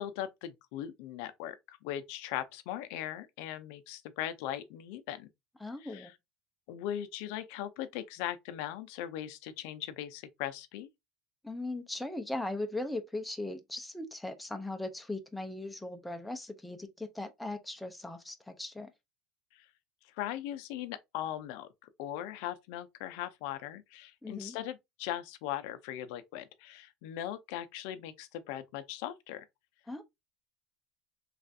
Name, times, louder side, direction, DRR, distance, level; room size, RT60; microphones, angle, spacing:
voice 1, 0.0-5.3 5.8-6.1 6.7-10.9 19.5-19.7 20.0-29.5, left 12 dB, 65° left, 0.4 m, -39 dB
voice 2, 5.6-6.1 11.4-18.9 24.2-24.6 29.9-30.0, left 2 dB, 5° left, 0.4 m, -38 dB
3.2 x 2.4 x 2.5 m
cardioid pair, 150°, 0 cm